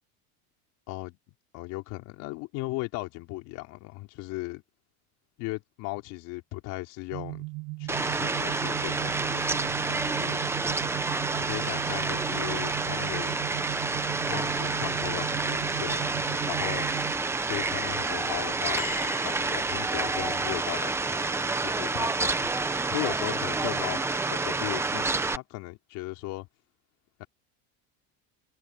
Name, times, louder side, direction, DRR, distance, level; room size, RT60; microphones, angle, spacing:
voice 1, 0.9-1.2 1.5-4.6 5.4-7.4 7.8-10.4 11.4-13.4 14.3-16.9 17.4-21.0 21.6-22.5 22.9-24.0 24.3-25.1 25.3-26.5 27.2-27.3, left 21 dB, 50° left, 4.2 m, -37 dB
sound 1, 7.1-17.1, right 27 dB, 55° right, 7.0 m, -37 dB
Fowl, 7.9-25.4, right 3 dB, 5° right, 0.7 m, -29 dB
sound 2, 18.7-20.2 20.9-21.0, left 29 dB, 70° left, 5.6 m, -43 dB
cardioid pair, 170°, 39 cm